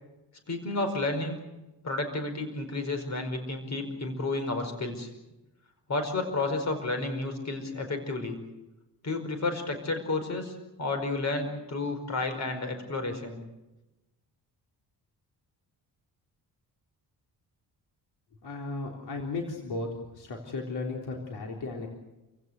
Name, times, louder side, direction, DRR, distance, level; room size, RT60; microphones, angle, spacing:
voice 1, 0.5-1.4 1.8-5.1 5.9-8.4 9.0-13.4, left 2 dB, 45° left, 7 dB, 5.1 m, -31 dB
voice 2, 18.4-19.9 20.1-21.9, left 3 dB, 75° left, 1 dB, 3.7 m, -35 dB
28.5 x 17.0 x 8.3 m, 1.0 s
cardioid pair, 130°, 40 cm